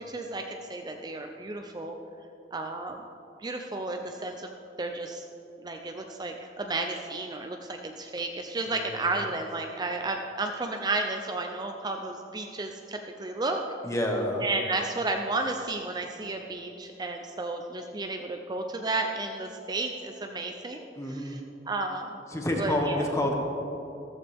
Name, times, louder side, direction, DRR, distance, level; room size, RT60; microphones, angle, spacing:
voice 1, 0.0-2.0 2.5-3.1 3.4-4.5 4.8-5.2 5.6-13.6 14.4-22.2 22.6-23.0, right 2 dB, 25° right, 3 dB, 0.5 m, -33 dB
voice 2, 8.8-9.2 13.8-14.4 21.0-21.4 22.3-23.4, left 1 dB, 15° left, 1 dB, 1.4 m, -28 dB
14.0 x 14.0 x 3.5 m, 2.9 s
head